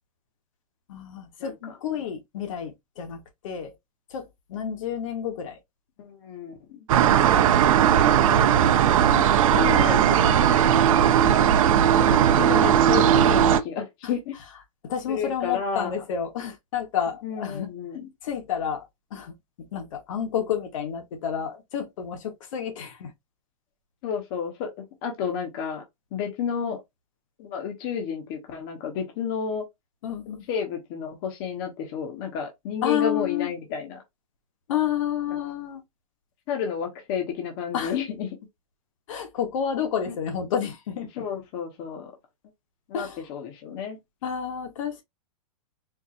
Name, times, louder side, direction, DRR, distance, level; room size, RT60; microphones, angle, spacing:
voice 1, 0.9-3.7 4.1-5.6 8.3-9.0 14.0-14.1 14.8-17.7 18.2-19.3 19.7-23.1 30.0-30.4 32.8-33.5 34.7-35.8 37.7-38.0 39.1-41.1 42.9-43.3 44.2-45.0, left 8 dB, 60° left, 1.2 m, -30 dB
voice 2, 6.0-6.8 7.3-7.7 8.9-9.3 9.5-10.4 11.7-14.4 15.1-15.9 17.2-18.1 24.0-25.8 26.1-26.8 27.4-29.6 30.5-34.0 36.5-38.3 41.2-42.1 42.9-44.0, left 7 dB, 40° left, 1.1 m, -31 dB
sound 1, 6.9-13.6, right 9 dB, 60° right, 0.6 m, -18 dB
4.6 x 2.6 x 2.5 m
hypercardioid pair, 155°, 19 cm